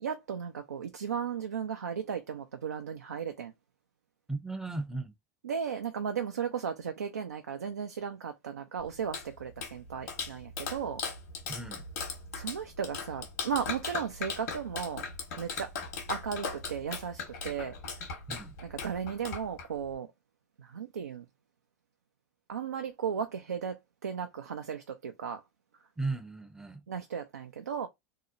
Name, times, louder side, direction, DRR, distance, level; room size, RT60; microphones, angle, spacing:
voice 1, 0.0-3.5 5.4-11.0 12.3-15.0 15.4-15.7 16.1-17.7 18.6-20.1 20.6-21.3 22.5-25.4 26.9-27.9, right 7 dB, 90° right, 0.3 m, -35 dB
voice 2, 4.3-5.1 11.5-11.8 18.3-18.6 26.0-26.8, right 3 dB, 5° right, 0.5 m, -36 dB
Clapping, 8.8-19.9, left 5 dB, 75° left, 1.1 m, -39 dB
2.7 x 2.0 x 2.5 m
hypercardioid pair, 90°, 8 cm